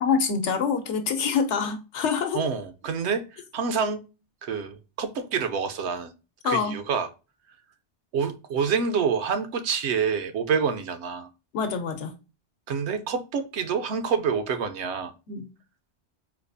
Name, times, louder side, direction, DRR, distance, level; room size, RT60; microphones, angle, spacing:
voice 1, 0.0-2.4 6.4-6.8 11.5-12.1 15.3-15.4, left 6 dB, 80° left, 1.0 m, -26 dB
voice 2, 2.3-4.0 4.4-6.1 6.4-7.1 8.1-11.3 12.7-15.1, right 6 dB, 75° right, 0.8 m, -27 dB
4.3 x 2.3 x 2.5 m
omnidirectional pair, 1.2 m